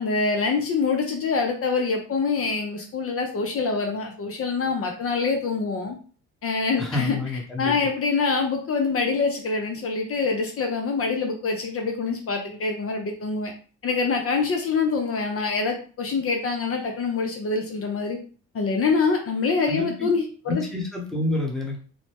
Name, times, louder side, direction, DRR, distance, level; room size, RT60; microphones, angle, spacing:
voice 1, 0.0-6.0 6.4-7.2 7.6-13.5 13.8-18.2 18.5-20.6, left 4 dB, 50° left, 3 dB, 0.6 m, -25 dB
voice 2, 6.8-7.9 19.7-20.1 20.5-21.8, left 2 dB, ahead, -1 dB, 0.9 m, -28 dB
2.7 x 2.1 x 3.3 m, 0.39 s
cardioid pair, 90°, 30 cm